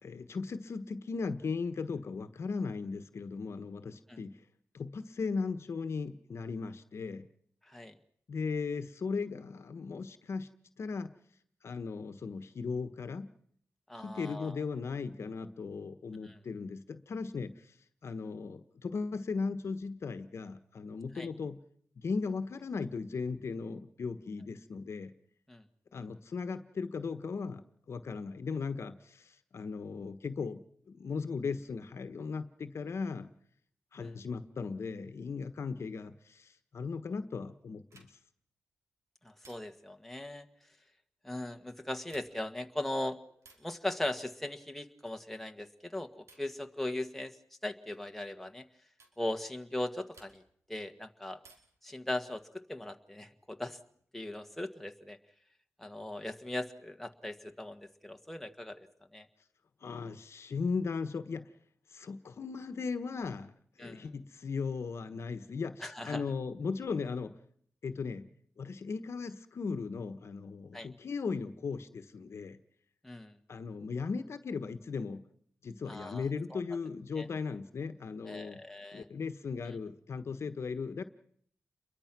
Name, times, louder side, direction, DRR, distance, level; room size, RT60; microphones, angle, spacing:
voice 1, 0.0-4.3 4.7-7.3 8.3-10.5 10.8-11.1 11.6-13.3 14.0-17.5 18.0-21.6 22.0-25.1 25.9-27.6 27.9-33.3 33.9-38.1 59.8-61.5 61.9-63.5 63.8-67.4 67.8-68.3 68.6-72.6 73.5-75.2 75.6-78.6 78.9-81.0, left 4 dB, 65° left, 10 dB, 1.3 m, -37 dB
voice 2, 13.9-14.6 16.3-16.4 21.1-21.3 25.5-25.6 34.0-34.1 39.2-40.4 41.2-43.2 43.6-47.3 47.6-48.6 49.2-50.4 50.7-51.4 51.8-52.4 52.7-53.8 54.1-55.2 55.8-58.9 59.1-59.2 63.8-64.1 65.8-66.2 70.7-70.9 73.0-73.3 75.9-76.2 76.5-76.6 77.1-77.3 78.2-79.0 79.6-79.8, left 1 dB, 5° left, 5 dB, 1.7 m, -39 dB
sound 1, 37.9-38.4 39.4-40.0 41.9-42.6 43.4-43.8 45.0-45.4 46.3-46.6 47.9-48.1 49.0-49.2 50.1-50.7 51.4-51.9 53.3-54.0, right 3 dB, 80° right, 5.0 m, -61 dB
28.5 x 22.5 x 6.1 m, 0.66 s
cardioid pair, 90°, 5 cm